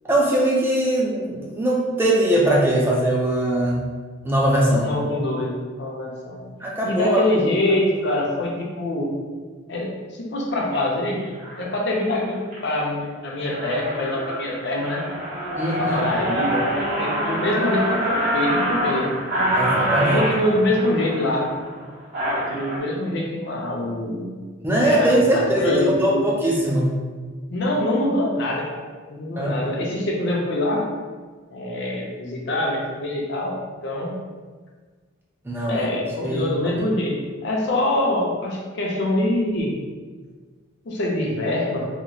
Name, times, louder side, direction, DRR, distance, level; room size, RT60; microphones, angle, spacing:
voice 1, 0.1-3.8 4.2-4.9 6.3-7.2 15.6-16.0 19.5-20.2 24.6-26.9 29.4-29.5 35.5-35.9 36.2-36.5, right 1 dB, 10° right, -4 dB, 0.4 m, -21 dB
voice 2, 4.8-6.4 6.8-9.1 9.7-11.2 11.6-15.0 15.8-16.7 17.0-19.1 20.0-21.5 22.4-24.5 24.7-26.3 27.5-28.8 29.1-30.9 31.5-34.2 35.7-39.8 40.9-41.9, left 1 dB, 55° left, -1 dB, 0.6 m, -25 dB
sound 1, 10.6-10.8 11.4-11.7 12.1-12.6 13.0-13.1 13.4-22.8, equal, 35° right, 1.3 m, -25 dB
2.9 x 2.0 x 3.8 m, 1.5 s
head